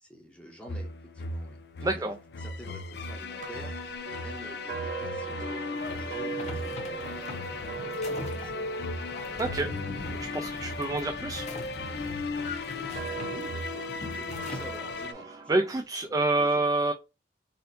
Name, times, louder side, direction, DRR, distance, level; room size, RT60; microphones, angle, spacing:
voice 1, 0.0-2.1 2.4-3.7 4.2-8.7 12.8-15.2 15.5-15.6 16.0-16.6, equal, 5° left, 0.8 m, -48 dB
sound 1, 0.7-15.1, left 3 dB, 65° left, 0.5 m, -36 dB
voice 2, 1.8-2.2 9.4-9.7 10.3-11.5 15.5-16.9, right 2 dB, 20° right, 0.4 m, -27 dB
sound 2, 3.4-11.5 12.3-15.8, right 8 dB, 50° right, 0.7 m, -41 dB
sound 3, 5.7-15.1, left 2 dB, 40° left, 0.9 m, -42 dB
4.2 x 2.6 x 2.6 m
head